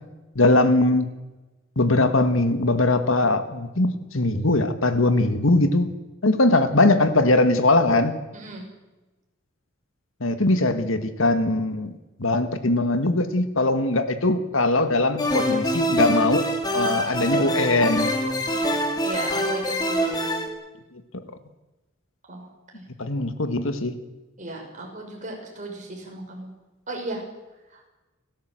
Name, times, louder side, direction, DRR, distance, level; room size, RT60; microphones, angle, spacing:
voice 1, 0.4-1.1 1.8-5.9 6.2-8.2 10.2-11.9 12.2-16.4 16.7-18.1 20.9-21.0 23.0-23.9, left 2 dB, 75° left, 9 dB, 1.8 m, -21 dB
voice 2, 8.3-8.7 18.4-20.1 22.3-22.5 22.7-22.8 24.4-26.5 26.9-27.2 27.7-27.8, right 2 dB, 40° right, 1 dB, 6.1 m, -36 dB
sound 1, 15.2-20.5, equal, 20° left, 2.8 m, -25 dB
29.5 x 13.0 x 7.8 m, 1.1 s
head